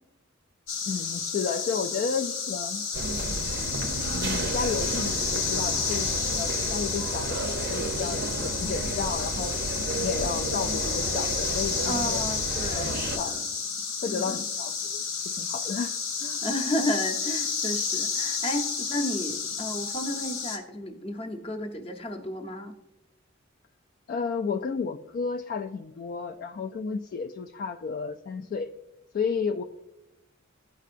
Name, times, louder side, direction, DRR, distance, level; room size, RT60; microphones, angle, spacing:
sound 1, 0.7-20.6, left 5 dB, 80° left, 1.0 m, -31 dB
voice 1, 0.9-2.8 4.1-9.6 9.9-12.2 12.7-13.4 14.0-16.4 24.1-28.7 29.1-29.6, left 5 dB, 45° left, 5 dB, 0.3 m, -32 dB
sound 2, 2.9-13.2, right 3 dB, 55° right, 0.6 m, -33 dB
voice 2, 11.8-13.4 14.0-14.3 16.4-22.7, left 1 dB, 30° left, 5 dB, 0.8 m, -32 dB
12.5 x 4.5 x 2.5 m, 0.93 s
head